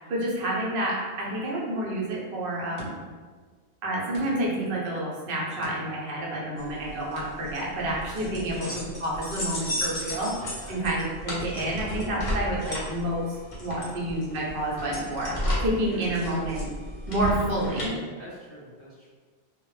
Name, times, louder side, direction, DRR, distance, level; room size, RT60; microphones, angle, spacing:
voice 1, 0.1-2.9 3.8-10.4 10.7-13.2 13.6-16.7 17.1-17.9, right 1 dB, 60° right, -4 dB, 0.8 m, -29 dB
sound 1, 1.8-2.1 2.8-3.3 4.1-4.7 5.6-7.7 8.6-9.2 10.1-10.7 11.6-11.7, right 1 dB, 90° right, 0.9 m, -45 dB
sound 2, 6.6-17.9, left 1 dB, 50° left, 0.8 m, -33 dB
voice 2, 8.1-8.8 10.6-10.9 11.2-11.4 13.7-14.0 15.7-16.5 18.2-19.1, equal, 15° right, -10 dB, 0.9 m, -46 dB
2.1 x 2.0 x 3.0 m, 1.5 s
omnidirectional pair, 1.1 m